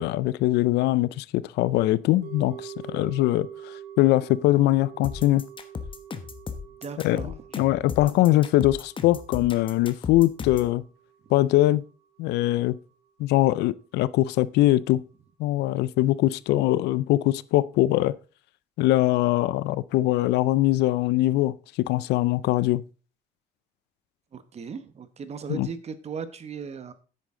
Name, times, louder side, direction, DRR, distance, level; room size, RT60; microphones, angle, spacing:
voice 1, 0.0-3.5 4.0-5.5 7.0-7.2 7.6-10.8 11.3-11.8 12.2-12.8 13.2-15.0 15.4-18.2 18.8-21.5 21.9-22.8 25.5-25.7, left 16 dB, 80° left, 0.4 m, -22 dB
sound 1, 2.2-12.5 12.8-12.9, right 10 dB, 80° right, 2.4 m, -46 dB
sound 2, 5.0-10.7, left 5 dB, 30° left, 1.2 m, -36 dB
voice 2, 6.6-7.4 8.2-8.6 24.3-26.9, right 6 dB, 40° right, 1.1 m, -38 dB
10.0 x 8.1 x 3.8 m
cardioid pair, 110°, 17 cm